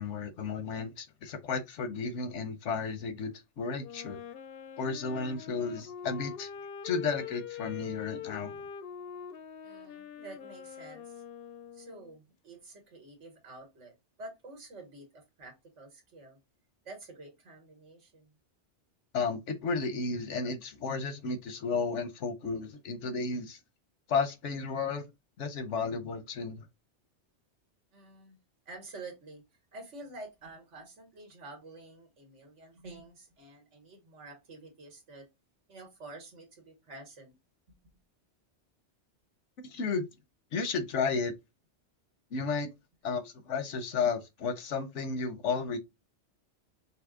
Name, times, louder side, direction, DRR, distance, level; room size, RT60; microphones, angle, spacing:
voice 1, 0.0-4.2 4.8-6.5 6.8-8.6 19.1-23.6 24.1-25.1 25.4-26.6 39.6-40.1 40.5-41.3 42.3-42.7 43.0-45.8, left 5 dB, 90° left, 1.1 m, -33 dB
Wind instrument woodwind instrument, 3.8-12.2, left 8 dB, 65° left, 0.7 m, -44 dB
voice 2, 9.6-11.2 11.7-16.4 16.8-18.3 27.9-28.4 28.6-29.4 29.7-35.3 35.7-37.4 37.7-38.0, right 2 dB, 85° right, 1.7 m, -49 dB
5.6 x 2.1 x 3.6 m
omnidirectional pair, 1.2 m